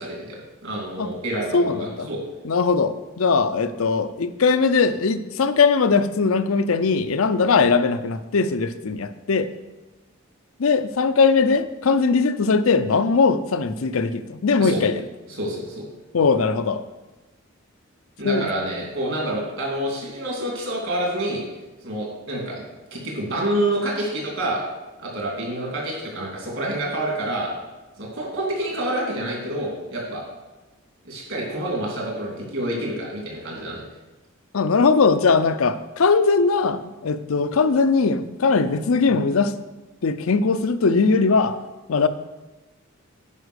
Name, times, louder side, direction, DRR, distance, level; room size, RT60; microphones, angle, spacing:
voice 1, 0.0-2.2 14.6-14.8 15.4-15.8 18.2-21.4 21.8-22.6 22.9-24.6 25.0-27.5 28.0-30.2 31.0-33.8, right 1 dB, 65° right, -2 dB, 3.1 m, -28 dB
voice 2, 1.5-2.1 2.4-9.5 10.6-15.0 16.1-16.8 18.2-18.5 34.5-39.5 40.0-41.6 41.9-42.1, left 4 dB, 80° left, 12 dB, 0.6 m, -20 dB
9.8 x 5.2 x 6.4 m, 1.1 s
head